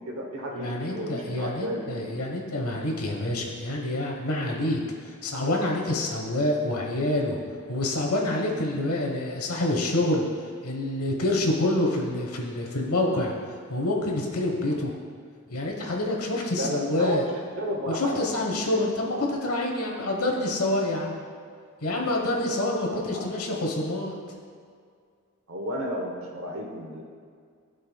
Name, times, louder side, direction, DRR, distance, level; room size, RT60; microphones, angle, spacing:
voice 1, 0.0-2.0 14.7-14.8 16.5-17.3 17.6-18.2 18.7-18.8 19.1-19.3 22.8-23.3 25.5-27.0, equal, 65° right, 1 dB, 1.0 m, -33 dB
voice 2, 0.5-4.8 5.2-7.4 7.7-10.2 10.6-13.3 13.7-14.9 15.5-17.2 17.9-21.1 21.8-24.2, left 1 dB, 75° left, 0 dB, 1.2 m, -27 dB
15.5 x 5.4 x 2.3 m, 2.1 s
head